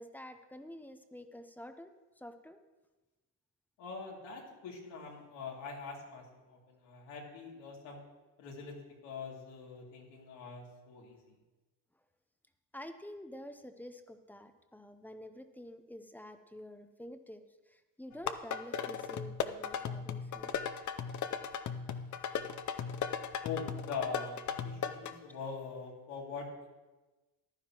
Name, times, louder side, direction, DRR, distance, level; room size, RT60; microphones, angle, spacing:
voice 1, 0.0-2.6 12.7-20.5 22.0-22.1, left 1 dB, 5° left, 8 dB, 0.6 m, -49 dB
voice 2, 3.8-8.0 8.4-11.3 23.4-26.7, left 5 dB, 85° left, -2 dB, 2.7 m, -43 dB
sound 1, 18.1-25.1, left 7 dB, 40° left, 0.6 m, -37 dB
14.5 x 11.0 x 3.0 m, 1.2 s
cardioid pair, 110°, 44 cm